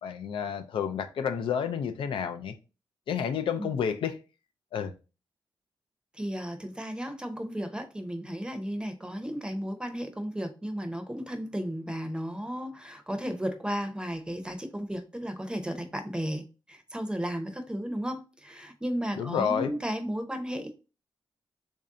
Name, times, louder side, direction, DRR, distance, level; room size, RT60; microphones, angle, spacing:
voice 1, 0.0-2.6 3.1-4.2 4.7-4.9 19.2-19.7, left 7 dB, 85° left, 0.4 m, -30 dB
voice 2, 6.1-20.8, equal, 10° right, 0.7 m, -34 dB
3.2 x 2.6 x 3.6 m
cardioid pair, 75°, 9 cm